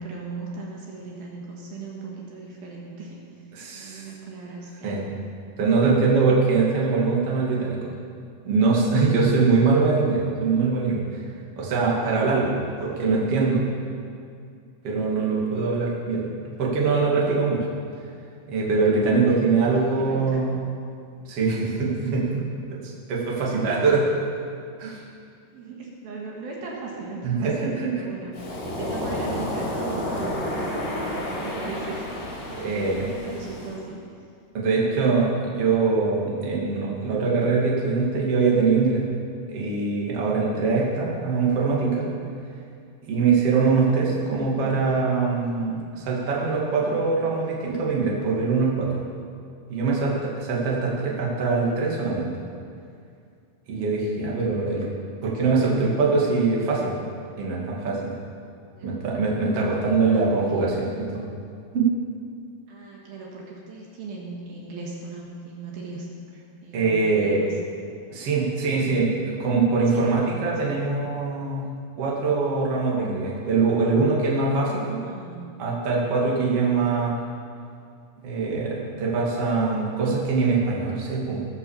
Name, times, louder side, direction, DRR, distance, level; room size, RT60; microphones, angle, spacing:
voice 1, 0.0-3.2 3.7-5.0 12.9-13.1 19.3-20.4 25.5-34.3 58.7-59.0 60.1-60.4 62.7-66.1 66.6-67.6 68.7-68.9 69.9-70.1 70.6-70.7 75.0-75.5, right 3 dB, 70° right, -3 dB, 3.3 m, -38 dB
voice 2, 3.5-4.0 4.8-5.0 5.6-7.9 8.4-11.2 11.6-12.5 12.8-13.6 14.8-16.3 16.6-17.7 18.5-20.6 21.2-22.4 23.1-24.1 24.8-25.0 27.2-27.9 32.6-33.1 34.5-39.0 39.5-42.0 43.1-49.0 49.7-52.3 53.7-54.8 55.2-57.0 57.4-58.1 58.8-61.2 61.7-61.9 66.7-67.4 68.1-69.1 69.4-71.7 72.0-75.0 75.6-77.1 78.2-81.5, right 4 dB, 40° right, -4 dB, 3.0 m, -23 dB
Waves surf, 28.3-33.8, left 1 dB, 85° left, 4.9 m, -31 dB
19.0 x 6.8 x 7.2 m, 2.4 s
omnidirectional pair, 4.6 m